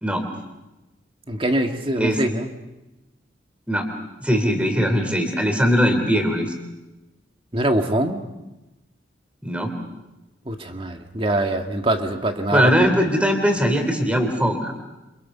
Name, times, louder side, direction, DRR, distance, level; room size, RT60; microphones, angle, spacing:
voice 1, 1.3-2.5 7.5-8.2 10.5-12.7, right 1 dB, 30° right, 5 dB, 1.8 m, -23 dB
voice 2, 4.2-6.5 9.4-9.7 12.5-14.7, equal, 5° right, 4 dB, 3.4 m, -20 dB
29.0 x 26.5 x 5.7 m, 1.0 s
head